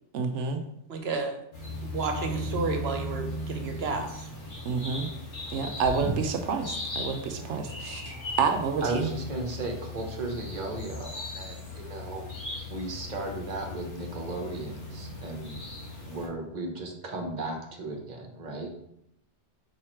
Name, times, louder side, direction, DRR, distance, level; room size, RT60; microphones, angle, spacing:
voice 1, 0.1-0.6 4.6-5.1 5.5-9.1, right 5 dB, 85° right, 6 dB, 1.0 m, -29 dB
voice 2, 0.9-1.4 1.9-4.3, right 4 dB, 65° right, 5 dB, 1.1 m, -31 dB
sound 1, 1.5-16.3, left 1 dB, 80° left, 2.1 m, -37 dB
voice 3, 8.8-12.3 12.7-15.6 16.0-18.7, right 2 dB, 40° right, 2 dB, 1.1 m, -35 dB
4.8 x 4.7 x 4.4 m, 0.77 s
omnidirectional pair, 1.2 m